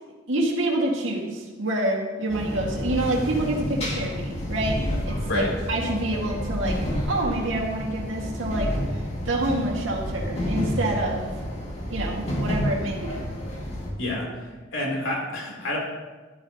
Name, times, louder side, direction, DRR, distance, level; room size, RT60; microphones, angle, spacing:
voice 1, 0.3-4.8 5.1-5.4 5.7-6.8 7.1-11.4 11.9-13.2, right 1 dB, 90° right, -1 dB, 2.0 m, -27 dB
sound 1, 2.3-13.9, equal, 35° left, 2.2 m, -30 dB
voice 2, 14.0-14.3 14.7-15.8, left 1 dB, 85° left, -2 dB, 3.2 m, -28 dB
12.5 x 12.5 x 2.9 m, 1.3 s
head